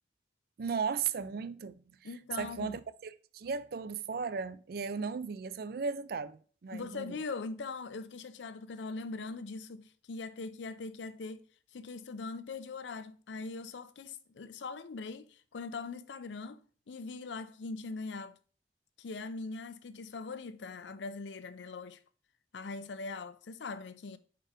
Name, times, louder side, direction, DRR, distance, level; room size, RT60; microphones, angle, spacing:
voice 1, 0.6-2.1 2.4-7.2, right 5 dB, 55° right, 0.4 m, -36 dB
voice 2, 2.0-2.8 6.7-11.4 11.7-18.4 19.0-22.0 22.5-24.2, left 3 dB, 80° left, 0.5 m, -41 dB
5.0 x 4.4 x 4.9 m
head